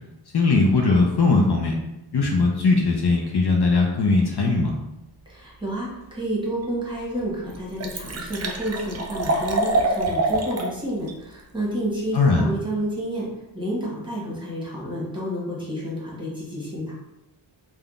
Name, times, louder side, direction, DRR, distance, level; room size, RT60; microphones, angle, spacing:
voice 1, 0.3-1.8 2.1-4.7 12.1-12.5, left 3 dB, 60° left, 0 dB, 0.5 m, -19 dB
voice 2, 5.3-13.3 13.5-17.0, right 1 dB, 10° right, -5 dB, 1.0 m, -30 dB
Liquid, 6.6-6.7 7.2-7.3 7.5-10.7 11.1-11.2, right 2 dB, 35° right, 0.4 m, -25 dB
3.4 x 2.2 x 2.4 m, 0.92 s
wide cardioid pair, 60°, 46 cm